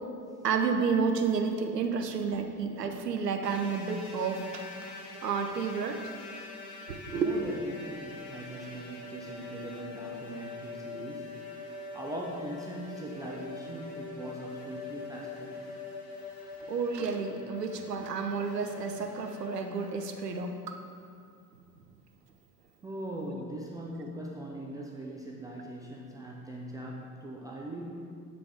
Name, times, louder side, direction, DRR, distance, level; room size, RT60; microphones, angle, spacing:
voice 1, 0.4-6.0 6.9-7.3 16.7-20.8, right 5 dB, 80° right, 6 dB, 0.8 m, -31 dB
sound 1, 3.4-20.5, left 4 dB, 50° left, 1.6 m, -44 dB
voice 2, 7.2-15.7 22.8-28.1, right 1 dB, 10° right, -3 dB, 0.3 m, -41 dB
8.5 x 5.1 x 4.9 m, 2.4 s
figure-of-eight pair, 75°, 48 cm